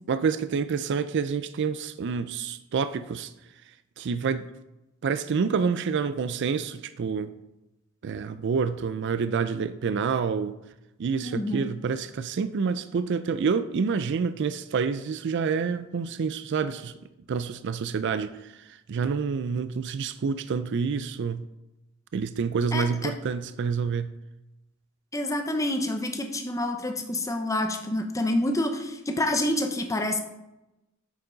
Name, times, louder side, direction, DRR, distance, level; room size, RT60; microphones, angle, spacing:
voice 1, 0.1-3.3 4.0-4.5 5.0-7.3 8.0-10.5 11.0-16.9 17.3-21.4 22.1-24.1, right 5 dB, 55° right, 12 dB, 0.4 m, -28 dB
voice 2, 11.2-11.7 22.7-23.1 25.1-30.2, left 1 dB, 15° left, 5 dB, 0.9 m, -28 dB
8.7 x 7.0 x 3.9 m, 0.94 s
head